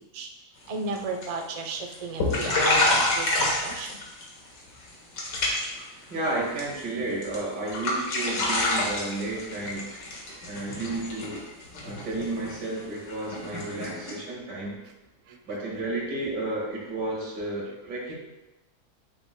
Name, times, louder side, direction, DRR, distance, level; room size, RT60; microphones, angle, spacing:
sound 1, 0.7-1.0 1.2-1.6 1.9-2.0 2.2-4.3 4.6-4.9 5.2-5.8 6.1-6.8 7.2-7.4 7.7-14.1, left 2 dB, 90° left, 2.2 m, -27 dB
voice 1, 0.7-2.9 3.2-4.0 10.3-10.8 11.8-11.9 15.3-15.4, right 3 dB, 65° right, 3 dB, 0.3 m, -35 dB
voice 2, 6.1-9.9 10.4-11.4 11.8-14.8 15.5-18.1, right 2 dB, 80° right, -2 dB, 2.5 m, -32 dB
8.7 x 7.8 x 2.2 m, 1.0 s
omnidirectional pair, 1.8 m